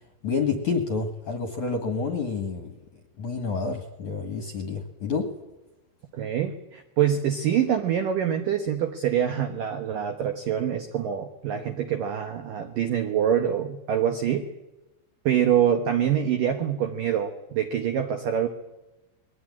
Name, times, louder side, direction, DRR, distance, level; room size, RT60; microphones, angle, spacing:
voice 1, 0.2-2.7 3.2-5.3, left 5 dB, 55° left, 6 dB, 2.2 m, -28 dB
voice 2, 6.1-14.5 15.3-18.5, right 9 dB, 90° right, 6 dB, 1.9 m, -25 dB
22.0 x 18.5 x 9.7 m, 1.0 s
omnidirectional pair, 5.9 m